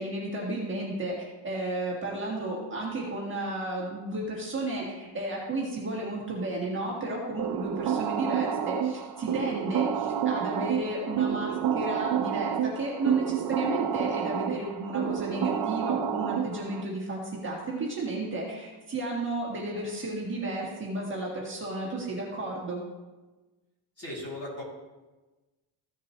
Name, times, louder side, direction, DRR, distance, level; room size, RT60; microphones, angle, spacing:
voice 1, 0.0-22.8, right 2 dB, 25° right, -4 dB, 1.7 m, -33 dB
sound 1, 7.4-16.8, right 8 dB, 50° right, 0.7 m, -29 dB
voice 2, 24.0-24.6, left 1 dB, 30° left, -5 dB, 2.9 m, -37 dB
15.5 x 6.6 x 3.1 m, 1.2 s
cardioid pair, 175°, 50 cm